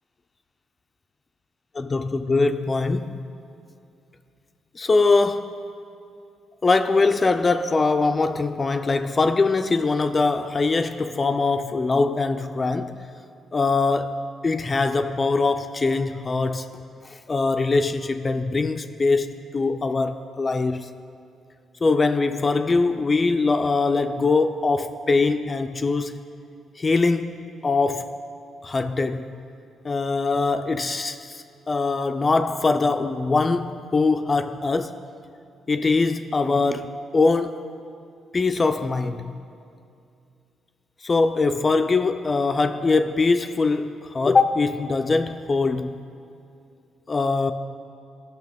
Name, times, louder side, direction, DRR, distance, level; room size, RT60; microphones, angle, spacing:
voice 1, 1.7-3.2 4.8-5.6 6.6-13.1 13.5-20.9 21.8-26.2 26.8-28.1 28.6-29.4 29.8-35.0 35.7-37.6 38.3-39.4 41.0-46.0 47.1-47.5, left 3 dB, 30° left, 0.3 m, -22 dB
14.5 x 5.8 x 3.5 m
cardioid pair, 90°, 0 cm